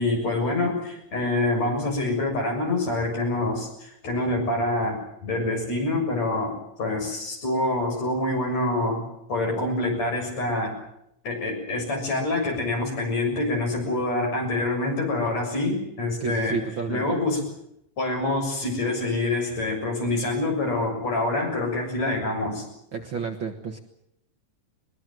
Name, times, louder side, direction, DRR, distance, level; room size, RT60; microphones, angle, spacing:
voice 1, 0.0-10.7 11.2-16.6 16.9-17.4 18.0-22.6, left 2 dB, 60° left, 2 dB, 8.1 m, -26 dB
voice 2, 16.2-17.2 22.9-23.8, right 6 dB, 50° right, 4 dB, 1.9 m, -31 dB
22.0 x 21.5 x 7.7 m, 0.78 s
omnidirectional pair, 3.5 m